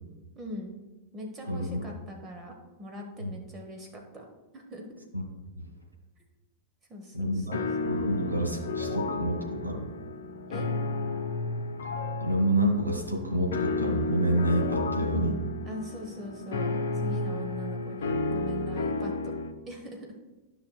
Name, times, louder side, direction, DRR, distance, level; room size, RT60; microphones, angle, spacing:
voice 1, 0.4-0.7 1.1-4.3 4.5-5.0 6.9-7.5 10.5-10.7 15.6-19.3 19.7-20.1, equal, 25° right, 1 dB, 1.2 m, -41 dB
voice 2, 1.5-1.9 3.2-3.3 5.1-5.2 5.6-5.7 7.1-7.6 7.8-9.9 12.2-15.4, right 1 dB, 85° right, 0 dB, 1.7 m, -28 dB
sound 1, 7.5-19.5, left 3 dB, 65° left, 0.8 m, -32 dB
13.0 x 5.9 x 2.3 m, 1.1 s
figure-of-eight pair, 90°, 0 cm